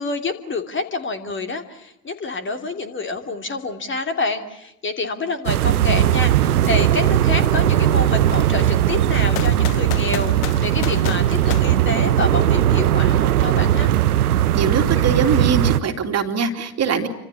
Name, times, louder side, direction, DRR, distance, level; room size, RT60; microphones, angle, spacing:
voice 1, 0.0-10.3 10.6-13.9, left 3 dB, 25° left, 6 dB, 3.0 m, -27 dB
sound 1, 5.5-15.8, right 12 dB, 75° right, 1.0 m, -18 dB
sound 2, 9.4-12.5, left 15 dB, 60° left, 1.1 m, -32 dB
voice 2, 14.5-17.1, right 5 dB, 35° right, 5 dB, 3.0 m, -22 dB
29.5 x 26.0 x 7.2 m, 0.83 s
figure-of-eight pair, 70°, 45 cm